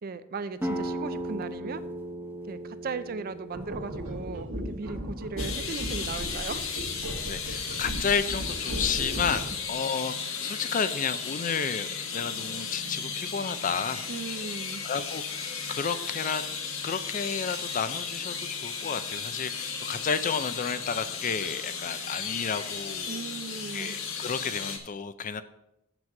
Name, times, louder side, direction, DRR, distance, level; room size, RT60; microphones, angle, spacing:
voice 1, 0.0-1.9 2.5-6.7 14.1-14.8 23.1-24.0, right 4 dB, 45° right, 13 dB, 0.5 m, -37 dB
sound 1, 0.6-6.0, right 1 dB, 10° right, 1.0 m, -37 dB
sound 2, 3.5-9.7, equal, 80° right, 1.8 m, -36 dB
sound 3, 5.4-24.8, left 5 dB, 65° left, 1.4 m, -35 dB
voice 2, 7.2-10.2 10.4-14.1 14.8-16.4 16.8-23.2 23.7-25.4, left 6 dB, 35° left, 12 dB, 0.4 m, -31 dB
7.4 x 6.1 x 6.5 m, 0.86 s
head